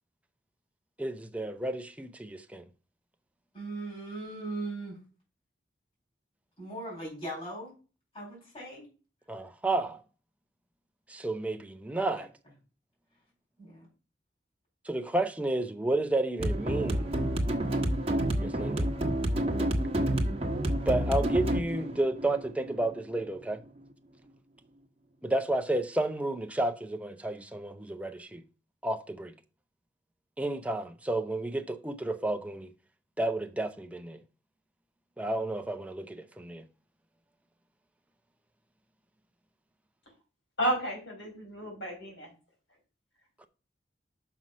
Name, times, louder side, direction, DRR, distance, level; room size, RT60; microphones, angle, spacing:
voice 1, 1.0-2.6 9.3-10.0 11.1-12.3 14.9-17.1 18.4-18.9 20.9-23.6 25.2-28.4 28.8-29.3 30.4-32.7 33.2-34.2 35.2-36.6, right 2 dB, 10° right, 0.6 m, -31 dB
voice 2, 3.5-5.0 6.6-7.7 8.1-8.9 12.1-12.2 13.6-13.8, right 2 dB, 30° left, 4.5 m, -39 dB
sound 1, 16.4-23.4, right 1 dB, 30° right, 1.3 m, -29 dB
voice 3, 40.6-42.3, right 1 dB, 75° left, 4.8 m, -32 dB
6.1 x 5.8 x 5.3 m
head